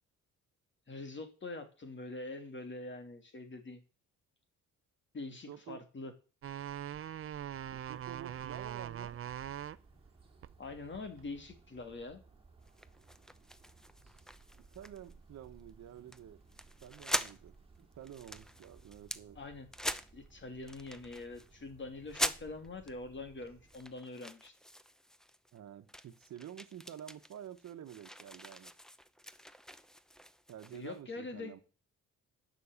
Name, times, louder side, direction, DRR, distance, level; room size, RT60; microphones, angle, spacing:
voice 1, 0.9-3.8 5.1-6.1 10.6-12.2 19.3-19.7 20.1-24.5 30.7-31.5, left 3 dB, 40° left, 2.8 m, -44 dB
voice 2, 5.5-5.8 7.7-9.2 14.5-16.4 16.8-19.4 25.5-28.7 30.5-31.6, right 10 dB, 65° right, 1.3 m, -49 dB
sound 1, 6.4-9.8 10.4-11.4, right 10 dB, 45° right, 0.6 m, -42 dB
sound 2, 7.5-24.2, right 4 dB, 20° right, 2.8 m, -61 dB
sound 3, 12.6-15.1 15.4-15.7 16.1-16.2 16.5-17.4 17.8-19.2 19.7-20.3 20.6-21.5 22.1-22.9 23.5-25.6 25.9-31.0, equal, ahead, 0.8 m, -42 dB
10.0 x 6.5 x 8.1 m
cardioid pair, 90°, 30 cm